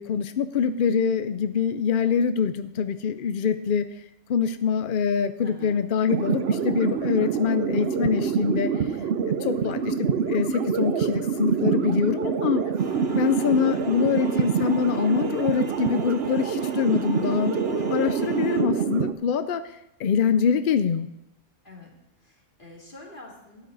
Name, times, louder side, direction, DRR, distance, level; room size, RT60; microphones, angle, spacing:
voice 1, 0.0-3.9 4.3-8.9 9.2-12.6 13.1-19.6 20.0-21.1, left 7 dB, 70° left, 11 dB, 0.5 m, -24 dB
voice 2, 5.4-5.8 13.5-13.9 21.6-21.9 22.2-23.7, left 2 dB, 35° left, -2 dB, 2.7 m, -45 dB
sound 1, 6.1-19.1, right 7 dB, 55° right, 0.7 m, -26 dB
sound 2, 12.8-18.6, right 4 dB, 35° right, 1.2 m, -37 dB
13.0 x 9.6 x 4.0 m, 0.85 s
omnidirectional pair, 1.6 m